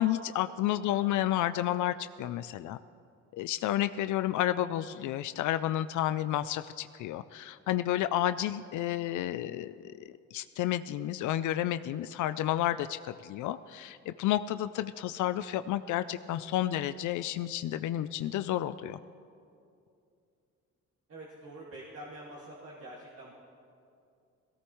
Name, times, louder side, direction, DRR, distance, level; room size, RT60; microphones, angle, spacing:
voice 1, 0.0-2.8 3.3-9.9 10.3-19.0, left 13 dB, 75° left, 12 dB, 0.5 m, -31 dB
voice 2, 0.8-1.2 16.6-16.9 21.1-23.3, right 1 dB, 45° right, -5 dB, 2.2 m, -47 dB
18.5 x 17.0 x 3.1 m, 2.5 s
cardioid pair, 90°, 30 cm